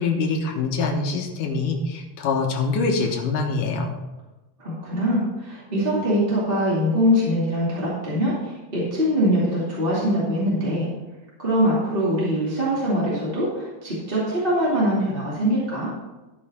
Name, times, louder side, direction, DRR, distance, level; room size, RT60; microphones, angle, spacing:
voice 1, 0.0-4.0, left 4 dB, 65° left, 2 dB, 2.3 m, -24 dB
voice 2, 4.6-10.9 11.4-15.9, equal, 20° right, -7 dB, 1.8 m, -23 dB
13.0 x 6.2 x 4.3 m, 1.1 s
omnidirectional pair, 4.7 m